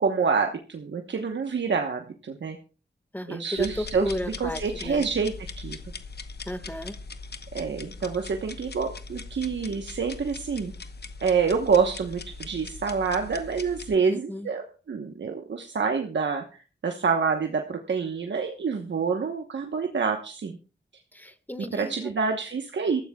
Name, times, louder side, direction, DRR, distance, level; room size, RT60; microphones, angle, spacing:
voice 1, 0.0-2.6 3.3-5.8 7.5-10.7 11.2-20.6 21.7-23.0, right 5 dB, 85° right, 4 dB, 1.1 m, -27 dB
voice 2, 3.1-5.1 6.5-6.9 14.1-14.5 21.1-22.1, left 1 dB, 10° left, 9 dB, 1.6 m, -34 dB
sound 1, 3.6-14.0, left 3 dB, 65° left, 1.1 m, -40 dB
22.0 x 14.0 x 2.3 m, 0.37 s
cardioid pair, 55°, 18 cm